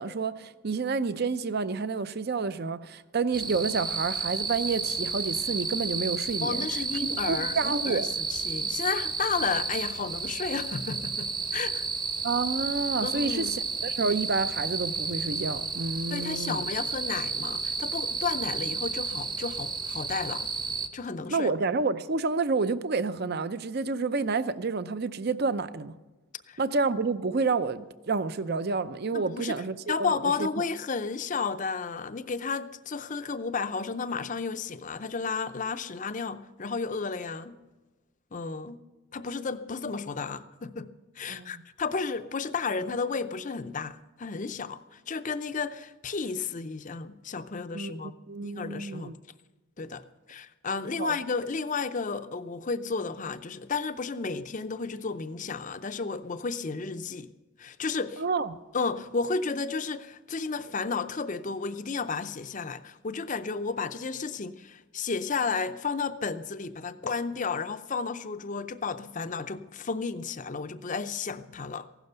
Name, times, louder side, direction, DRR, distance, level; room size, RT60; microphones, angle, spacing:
voice 1, 0.0-6.7 7.3-8.1 12.2-16.7 21.3-25.9 26.6-30.5 41.3-41.6 47.7-49.2 51.0-51.1 58.2-58.6, right 4 dB, 45° right, 0.6 m, -29 dB
sound 1, 3.3-20.9, right 4 dB, 20° right, 0.9 m, -32 dB
voice 2, 6.4-11.9 13.0-13.5 16.1-20.5 20.9-21.5 26.5-26.6 29.1-29.6 29.9-37.6 38.3-38.8 39.1-40.9 41.2-48.1 48.4-49.1 49.8-57.3 57.6-58.2 58.7-71.9, left 4 dB, 35° left, 0.5 m, -32 dB
15.5 x 12.0 x 6.8 m
head